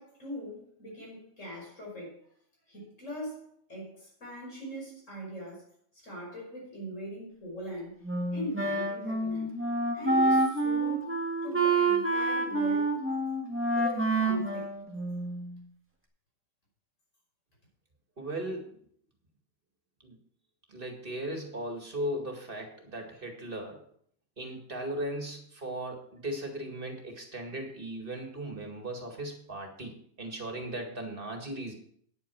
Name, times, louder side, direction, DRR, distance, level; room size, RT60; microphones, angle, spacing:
voice 1, 0.0-2.2 2.7-5.6 6.0-8.0 8.3-9.5 9.9-11.2 11.4-13.0 13.8-14.7, equal, 85° left, 5.7 m, -41 dB
Wind instrument woodwind instrument, 8.0-15.5, right 2 dB, 10° right, 2.0 m, -28 dB
voice 2, 18.2-18.7 20.0-20.2 20.7-23.8 24.4-29.9 30.2-31.7, right 1 dB, 45° right, 2.3 m, -37 dB
9.7 x 8.6 x 6.1 m
omnidirectional pair, 1.3 m